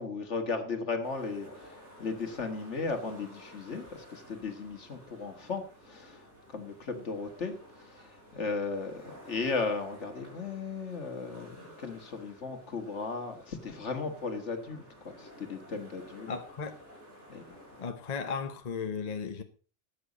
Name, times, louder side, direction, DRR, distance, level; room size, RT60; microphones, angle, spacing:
voice 1, 0.0-16.3 17.3-17.6, left 4 dB, 70° left, 2.0 m, -36 dB
sound 1, 1.0-17.8, equal, 65° right, 5.7 m, -53 dB
voice 2, 16.3-16.8 17.8-19.4, left 5 dB, 35° left, 1.0 m, -35 dB
13.5 x 8.7 x 4.1 m
omnidirectional pair, 1.3 m